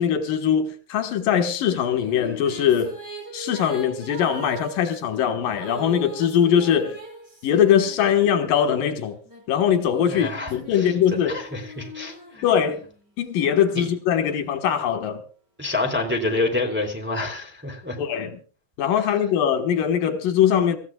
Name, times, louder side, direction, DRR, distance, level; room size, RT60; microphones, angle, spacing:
voice 1, 0.0-2.9 3.3-7.0 7.4-9.2 9.5-11.4 12.4-12.8 13.2-15.2 18.0-18.3 18.8-20.8, left 8 dB, 85° left, 3.3 m, -21 dB
Female singing, 1.6-8.6 9.3-13.0, right 2 dB, 30° right, 6.7 m, -40 dB
voice 2, 10.1-11.0 11.2-12.4 13.7-13.9 15.6-18.0, left 2 dB, 5° right, 2.8 m, -27 dB
26.5 x 14.5 x 2.4 m
omnidirectional pair, 3.8 m